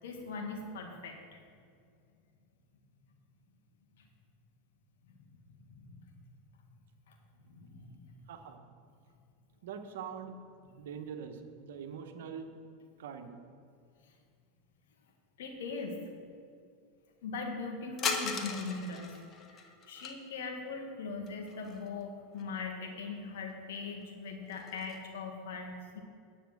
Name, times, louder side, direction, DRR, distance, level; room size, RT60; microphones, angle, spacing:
voice 1, 0.0-1.4 5.0-5.2 5.5-6.0 7.1-7.2 7.4-8.2 10.6-10.7 15.4-16.0 17.2-19.1 19.5-26.0, left 4 dB, 75° left, 2 dB, 2.0 m, -41 dB
voice 2, 8.3-8.6 9.6-10.3 10.8-12.5 13.0-13.3, right 7 dB, 75° right, 6 dB, 1.2 m, -43 dB
sound 1, 18.0-20.1 21.3-22.0 22.3-22.4 23.4-23.5 23.9-25.0, left 5 dB, 35° left, 1.5 m, -38 dB
10.5 x 6.8 x 7.7 m, 2.3 s
hypercardioid pair, 95°, 0 cm